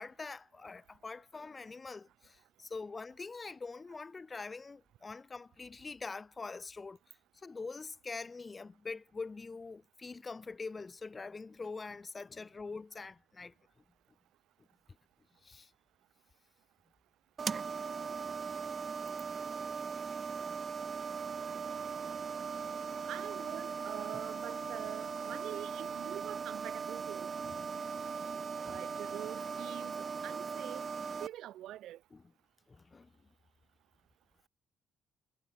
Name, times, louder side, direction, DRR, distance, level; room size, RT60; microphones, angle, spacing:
voice 1, 0.0-7.0 7.4-13.5 15.4-15.7 21.8-21.9 27.4-27.9 28.6-28.9 32.1-32.2 32.7-33.1, left 4 dB, 30° left, 0.3 m, -44 dB
sound 1, 17.4-31.3, right 5 dB, 40° right, 0.8 m, -39 dB
voice 2, 23.0-27.3 28.6-30.8 31.2-32.0, right 13 dB, 80° right, 1.1 m, -45 dB
cardioid pair, 90°, 0 cm